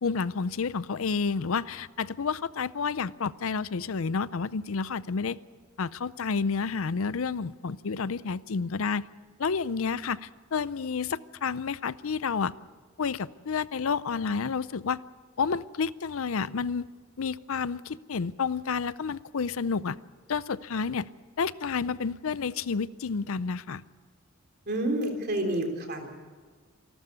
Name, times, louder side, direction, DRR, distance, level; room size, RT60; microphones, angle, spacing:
voice 1, 0.0-5.4 5.8-9.1 9.4-12.5 13.0-15.0 15.4-16.9 17.2-20.0 20.3-21.1 21.4-23.8, left 5 dB, 70° left, 18 dB, 0.5 m, -30 dB
voice 2, 24.7-26.1, right 1 dB, 50° right, 4 dB, 3.3 m, -29 dB
27.0 x 12.5 x 9.5 m, 1.5 s
head